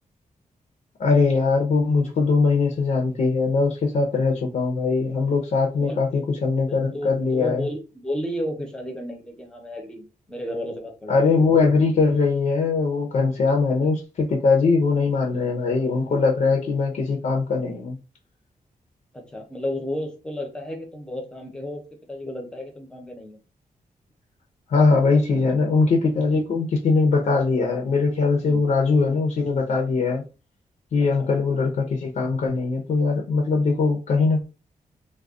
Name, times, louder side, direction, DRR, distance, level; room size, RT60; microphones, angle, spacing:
voice 1, 1.0-7.7 11.1-18.0 24.7-30.2 30.9-34.4, left 4 dB, 60° left, 0.6 m, -21 dB
voice 2, 5.8-6.2 6.7-11.2 15.3-15.5 19.1-21.8 22.1-23.4 25.1-25.5 28.4-28.6 31.2-31.3, equal, 5° left, 0.7 m, -33 dB
2.4 x 2.1 x 3.5 m
wide cardioid pair, 175°, 15 cm